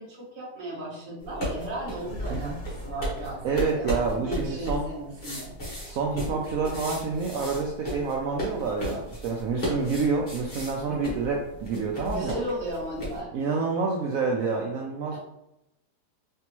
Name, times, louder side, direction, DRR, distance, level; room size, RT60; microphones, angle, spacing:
voice 1, 0.0-5.5 6.2-6.4 10.9-11.0 12.1-13.3 15.1-15.2, right 1 dB, 35° right, -7 dB, 1.3 m, -36 dB
sound 1, 1.2-13.2, equal, 35° left, 1.6 m, -35 dB
sound 2, 2.0-5.5, equal, 70° left, 0.4 m, -41 dB
voice 2, 3.4-4.9 5.8-12.3 13.3-15.2, right 4 dB, 70° right, -1 dB, 0.9 m, -28 dB
4.0 x 3.4 x 3.0 m, 0.86 s
omnidirectional pair, 1.8 m